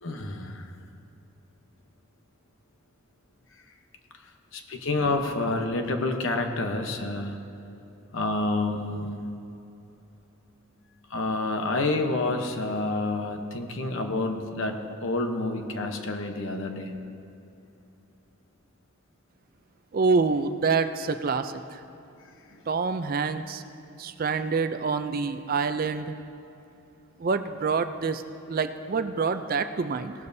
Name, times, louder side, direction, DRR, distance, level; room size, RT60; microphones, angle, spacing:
voice 1, 0.0-0.7 4.5-7.4 8.1-9.3 11.1-17.0 22.5-22.6, left 2 dB, 65° left, 5 dB, 1.0 m, -28 dB
voice 2, 19.9-21.8 22.7-23.6 24.0-26.1 27.2-28.2 28.5-30.1, right 4 dB, 40° right, 10 dB, 0.4 m, -26 dB
18.0 x 12.0 x 2.7 m, 2.8 s
head